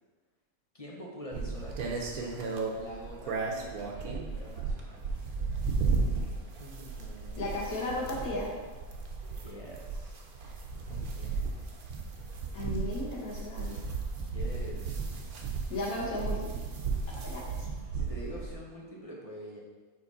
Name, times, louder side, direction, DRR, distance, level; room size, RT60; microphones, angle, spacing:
voice 1, 0.7-5.1 6.5-7.8 9.3-10.2 10.9-11.7 14.2-15.2 17.9-19.6, equal, 30° left, -2 dB, 0.8 m, -46 dB
sound 1, 1.3-18.6, right 4 dB, 85° right, 1.3 m, -35 dB
voice 2, 7.4-8.5 12.5-13.8 15.7-16.6 17.2-17.7, left 2 dB, 75° left, -4 dB, 1.9 m, -35 dB
5.4 x 5.2 x 4.1 m, 1.4 s
omnidirectional pair, 1.5 m